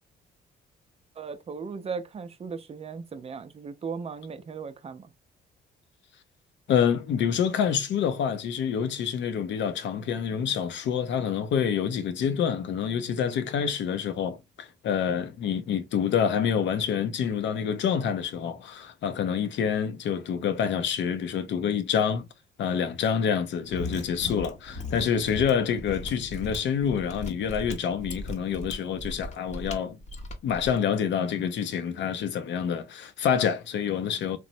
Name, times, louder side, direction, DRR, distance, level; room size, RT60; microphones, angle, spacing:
voice 1, 1.2-5.1, right 5 dB, 30° right, 0.4 m, -37 dB
voice 2, 6.7-22.2 22.6-30.0 30.4-34.4, left 7 dB, 65° left, 0.5 m, -27 dB
Mechanisms, 23.6-30.8, left 1 dB, 35° left, 0.7 m, -38 dB
3.0 x 2.0 x 2.6 m
cardioid pair, 90°, 20 cm